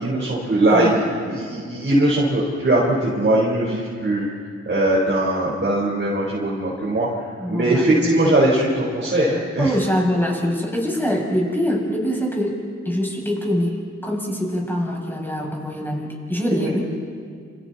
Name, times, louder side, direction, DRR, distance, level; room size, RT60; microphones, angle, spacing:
voice 1, 0.0-4.3 4.7-9.8 16.5-16.7, right 1 dB, 40° right, -6 dB, 4.6 m, -20 dB
voice 2, 0.7-1.0 7.4-8.3 9.6-12.6 12.9-13.8 14.0-16.8, equal, 5° left, -2 dB, 6.8 m, -24 dB
29.5 x 28.0 x 4.3 m, 2.1 s
cardioid pair, 75°, 29 cm